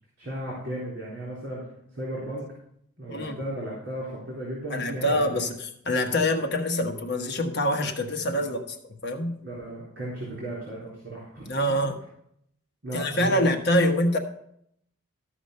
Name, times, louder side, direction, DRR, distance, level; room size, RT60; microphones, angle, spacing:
voice 1, 0.2-1.6 1.9-2.5 3.0-5.4 8.3-8.5 9.4-11.5 12.8-13.5, right 1 dB, 50° right, -6 dB, 3.8 m, -35 dB
voice 2, 4.7-9.3 11.5-11.9 12.9-14.2, left 1 dB, 50° left, 3 dB, 1.2 m, -25 dB
13.5 x 5.0 x 6.7 m, 0.72 s
head